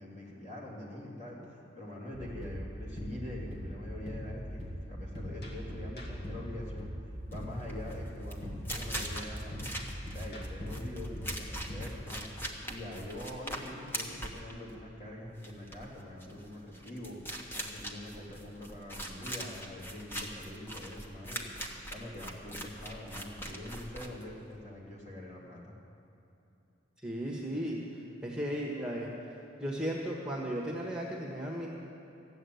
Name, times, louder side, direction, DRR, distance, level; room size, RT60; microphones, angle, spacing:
voice 1, 0.0-9.7 10.1-12.3 12.6-21.5 21.9-25.7, left 1 dB, 40° left, -4 dB, 2.9 m, -44 dB
sound 1, 2.1-11.9, equal, 55° left, 1.7 m, -41 dB
sound 2, 7.2-24.6, right 1 dB, 10° left, 1.2 m, -42 dB
voice 2, 27.0-27.8 28.2-29.1 29.6-31.7, equal, 5° right, -3 dB, 1.4 m, -35 dB
14.5 x 7.6 x 9.4 m, 2.8 s
head